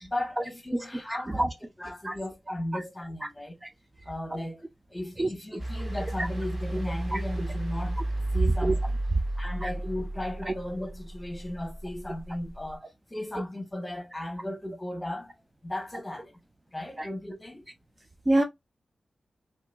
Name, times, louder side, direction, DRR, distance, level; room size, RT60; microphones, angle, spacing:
voice 1, 0.0-3.6 4.0-4.6 4.9-8.0 8.3-9.0 9.4-15.3 15.6-16.3 16.7-17.6, left 1 dB, 15° left, 1.2 m, -36 dB
voice 2, 1.4-1.5 2.0-2.1 5.2-5.3 7.1-7.2 8.6-8.7 9.6-9.7 17.0-17.1 18.3-18.4, right 1 dB, 25° right, 0.5 m, -24 dB
sound 1, 5.6-12.7, right 1 dB, 40° right, 1.9 m, -33 dB
3.4 x 2.9 x 2.2 m
cardioid pair, 65°, 0 cm